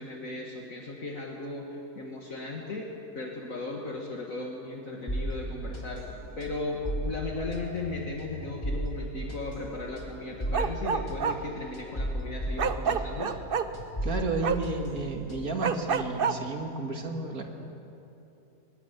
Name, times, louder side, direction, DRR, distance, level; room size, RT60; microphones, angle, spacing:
voice 1, 0.0-2.9 3.1-6.0 6.4-13.3, left 2 dB, 55° left, -1 dB, 2.3 m, -36 dB
sound 1, 5.1-13.5 13.7-15.7, right 1 dB, 15° left, 3.1 m, -35 dB
Bark, 10.5-11.4 12.6-13.6 14.4-14.6 15.6-16.3, right 6 dB, 45° right, 0.8 m, -27 dB
voice 2, 14.0-17.4, right 3 dB, 60° right, 3 dB, 2.6 m, -32 dB
21.0 x 20.5 x 8.2 m, 2.9 s
omnidirectional pair, 1.7 m